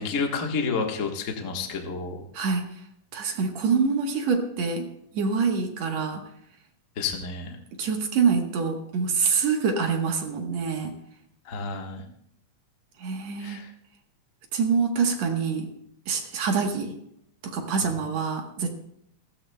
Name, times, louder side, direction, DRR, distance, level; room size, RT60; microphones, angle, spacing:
voice 1, 0.0-2.2 7.0-7.6 11.4-12.0 13.4-13.7, left 4 dB, 50° left, 2 dB, 0.9 m, -30 dB
voice 2, 3.1-6.2 7.8-11.0 13.0-13.6 14.5-15.7 16.1-16.9 17.4-18.7, right 5 dB, 65° right, 3 dB, 2.3 m, -25 dB
19.5 x 15.5 x 2.2 m, 0.74 s
omnidirectional pair, 3.7 m